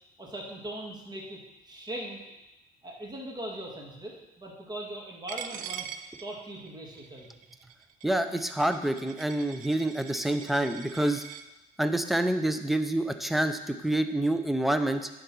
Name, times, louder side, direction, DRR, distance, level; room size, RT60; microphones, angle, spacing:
voice 1, 0.2-2.2 2.8-7.3, right 1 dB, 25° right, -2 dB, 2.1 m, -40 dB
Coin (dropping), 5.3-11.4, right 9 dB, 50° right, 0.5 m, -43 dB
voice 2, 8.0-11.2 11.8-15.1, right 1 dB, ahead, 8 dB, 0.5 m, -27 dB
10.0 x 3.9 x 6.0 m, 1.0 s
cardioid pair, 110°, 17 cm